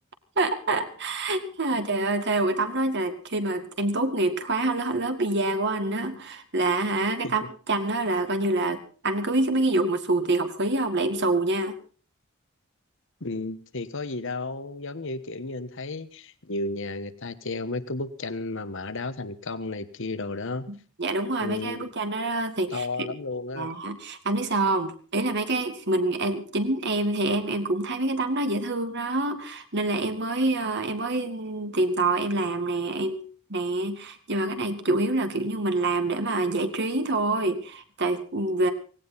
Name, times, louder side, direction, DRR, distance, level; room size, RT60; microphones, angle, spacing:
voice 1, 0.4-7.4 7.7-11.8 20.7-23.1 23.5-33.2 33.5-38.7, right 2 dB, 55° right, 8 dB, 2.1 m, -26 dB
voice 2, 13.2-20.7 21.4-21.9 22.7-23.7, left 3 dB, 60° left, 13 dB, 1.3 m, -33 dB
18.0 x 17.0 x 4.1 m, 0.40 s
head